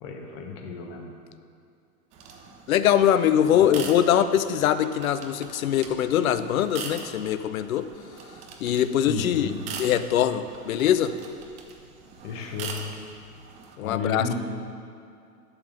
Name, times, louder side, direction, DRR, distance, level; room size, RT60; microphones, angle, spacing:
voice 1, 0.0-1.1 3.5-3.7 9.1-9.6 12.2-12.9 13.8-14.3, left 5 dB, 40° left, 2 dB, 1.2 m, -32 dB
sound 1, 2.1-13.8, right 5 dB, 15° right, 0.4 m, -42 dB
voice 2, 2.7-7.9 8.6-11.1 13.8-14.3, left 10 dB, 60° left, 12 dB, 0.6 m, -22 dB
11.0 x 3.8 x 6.3 m, 2.4 s
hypercardioid pair, 110°, 46 cm